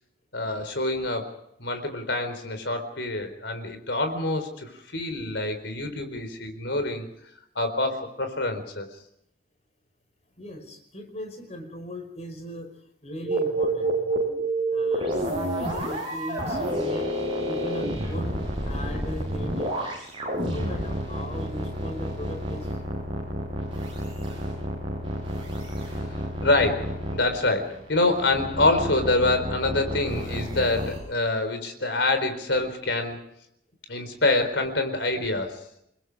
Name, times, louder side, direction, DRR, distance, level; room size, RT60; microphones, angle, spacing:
voice 1, 0.3-7.1 7.5-8.9 26.4-33.2 33.9-35.6, left 2 dB, 70° left, 8 dB, 4.3 m, -26 dB
voice 2, 10.4-12.7 13.0-13.9 14.7-19.9 20.5-22.7, equal, 35° left, 6 dB, 5.0 m, -38 dB
sound 1, 13.2-31.0, right 1 dB, 30° right, 7.2 m, -30 dB
29.5 x 21.0 x 4.9 m, 0.76 s
head